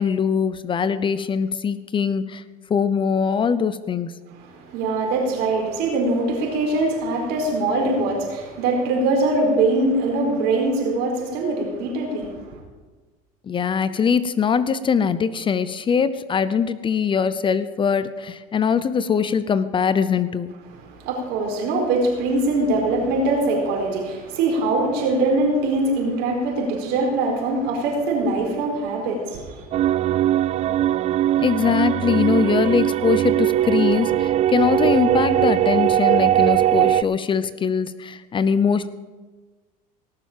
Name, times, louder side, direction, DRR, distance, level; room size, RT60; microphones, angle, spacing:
voice 1, 0.0-2.4 2.7-4.1 13.5-20.5 31.4-38.9, left 6 dB, 30° left, 15 dB, 0.7 m, -22 dB
voice 2, 4.4-12.6 20.8-29.6, right 2 dB, 70° right, 1 dB, 4.4 m, -22 dB
sound 1, 29.7-37.0, right 12 dB, 40° right, 0.4 m, -20 dB
17.5 x 7.1 x 7.5 m, 1.3 s
supercardioid pair, 105°, 18 cm